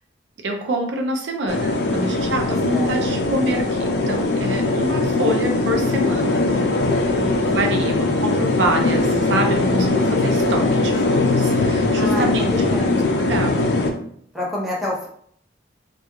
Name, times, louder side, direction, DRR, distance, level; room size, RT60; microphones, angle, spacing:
voice 1, 0.4-6.4 7.1-12.4 13.2-13.5, right 1 dB, 80° right, 2 dB, 0.5 m, -26 dB
sound 1, 1.5-13.9, left 2 dB, 65° left, 0.4 m, -20 dB
voice 2, 7.2-8.1 12.0-13.5 14.3-15.1, left 1 dB, ahead, -5 dB, 0.6 m, -30 dB
2.3 x 2.2 x 2.8 m, 0.64 s
head